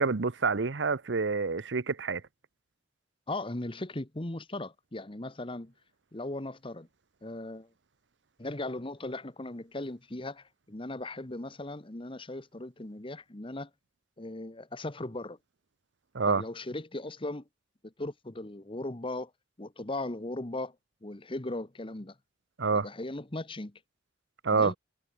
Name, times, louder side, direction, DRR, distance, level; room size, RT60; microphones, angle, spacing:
voice 1, 0.0-2.2 16.1-16.4 22.6-22.9 24.4-24.7, right 4 dB, 75° right, 0.8 m, -27 dB
voice 2, 3.3-5.7 6.1-6.9 7.2-7.7 8.4-13.7 14.2-15.4 16.2-17.4 17.8-19.3 19.6-20.7 21.0-22.1 22.7-23.7 24.5-24.7, left 2 dB, 30° left, 1.3 m, -38 dB
head